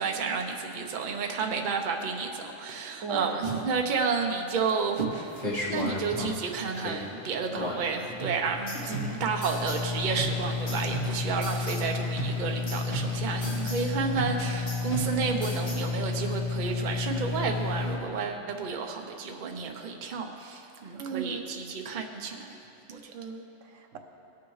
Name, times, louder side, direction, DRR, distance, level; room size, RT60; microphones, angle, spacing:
voice 1, 0.0-5.4 5.6-8.9 9.2-22.6 22.9-23.1, right 5 dB, 45° right, 3 dB, 0.8 m, -31 dB
voice 2, 3.0-3.7 8.8-9.3 20.9-21.5 23.1-24.0, right 5 dB, 80° right, 4 dB, 1.1 m, -37 dB
sound 1, 5.0-18.0, left 4 dB, 35° left, 1.5 m, -32 dB
sound 2, 8.2-9.9 10.2-11.9 12.2-13.9 14.2-15.9, right 2 dB, 55° left, 2.9 m, -38 dB
18.5 x 7.0 x 3.2 m, 2.9 s
omnidirectional pair, 1.3 m